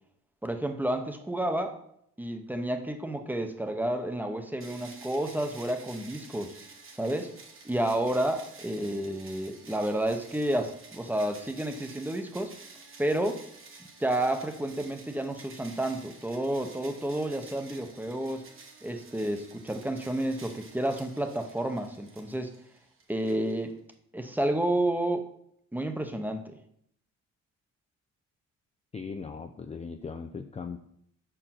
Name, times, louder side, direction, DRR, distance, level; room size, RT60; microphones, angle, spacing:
voice 1, 0.4-1.8 2.2-6.6 7.0-7.3 7.6-12.5 13.0-13.4 14.0-18.5 18.8-22.5 23.1-23.7 24.1-25.2 25.7-26.5, right 1 dB, 5° right, 6 dB, 0.8 m, -30 dB
sound 1, 4.6-24.0, right 4 dB, 45° right, 1.2 m, -51 dB
voice 2, 28.9-30.8, left 5 dB, 20° left, 6 dB, 0.4 m, -38 dB
5.0 x 4.6 x 5.8 m, 0.70 s
cardioid pair, 90°, 30 cm